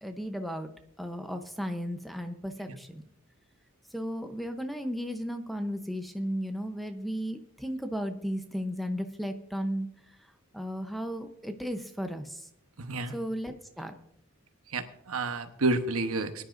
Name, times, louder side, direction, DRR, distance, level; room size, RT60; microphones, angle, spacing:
voice 1, 0.0-0.7 1.0-3.0 3.9-9.9 10.5-12.5 13.1-13.9, equal, ahead, 6 dB, 0.7 m, -35 dB
voice 2, 12.8-13.1 14.7-16.5, right 2 dB, 90° right, 8 dB, 1.0 m, -30 dB
22.0 x 10.0 x 2.6 m, 0.73 s
head